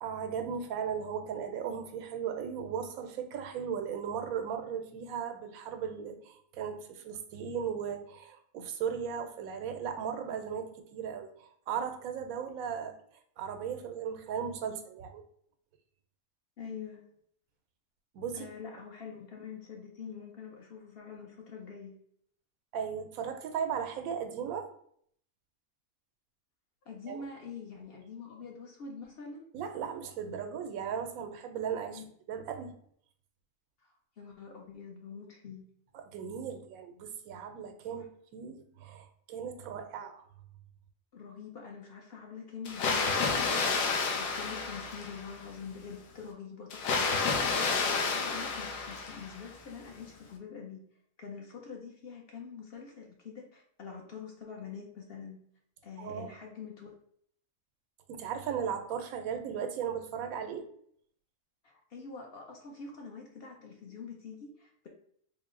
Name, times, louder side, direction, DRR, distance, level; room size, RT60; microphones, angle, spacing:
voice 1, 0.0-12.9 13.4-15.2 18.1-18.5 22.7-24.7 27.1-27.2 29.5-32.0 32.3-32.7 36.1-38.1 38.3-40.2 56.0-56.3 58.1-60.7, right 7 dB, 90° right, 7 dB, 1.0 m, -36 dB
voice 2, 16.6-17.1 18.3-22.0 26.9-29.4 31.9-32.0 34.2-35.6 37.9-38.1 41.1-50.8 51.2-55.4 55.8-56.9 61.6-64.9, left 5 dB, 60° left, 0 dB, 0.7 m, -45 dB
Water, 42.7-45.5 46.7-49.5, left 4 dB, 80° left, 1.1 m, -30 dB
3.8 x 2.0 x 3.6 m, 0.65 s
omnidirectional pair, 1.4 m